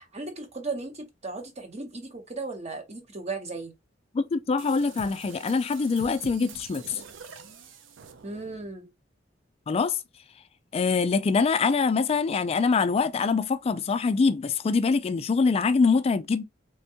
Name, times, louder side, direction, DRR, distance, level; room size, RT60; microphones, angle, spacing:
voice 1, 0.0-3.7 8.2-8.9, right 3 dB, 35° right, 0.8 m, -36 dB
voice 2, 4.1-7.0 9.7-10.0 10.7-16.4, left 4 dB, 30° left, 0.3 m, -24 dB
sound 1, 4.6-8.7, right 5 dB, 75° right, 0.5 m, -46 dB
3.4 x 2.2 x 2.7 m
head